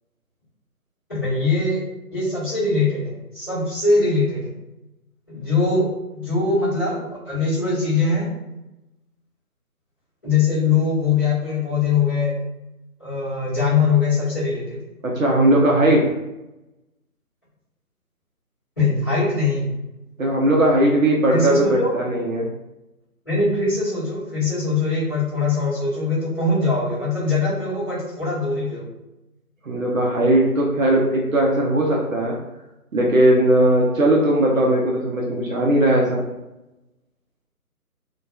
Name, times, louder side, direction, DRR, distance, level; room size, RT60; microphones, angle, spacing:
voice 1, 1.1-1.8 2.1-4.5 5.3-5.9 6.1-8.3 10.2-12.3 13.0-14.8 18.8-19.7 21.3-21.9 23.2-28.9, left 3 dB, 15° left, -15 dB, 1.1 m, -21 dB
voice 2, 15.0-16.1 20.2-22.5 29.6-32.4 32.9-36.2, right 1 dB, 60° right, -2 dB, 0.6 m, -18 dB
2.5 x 2.2 x 2.2 m, 0.96 s
figure-of-eight pair, 160°, 46 cm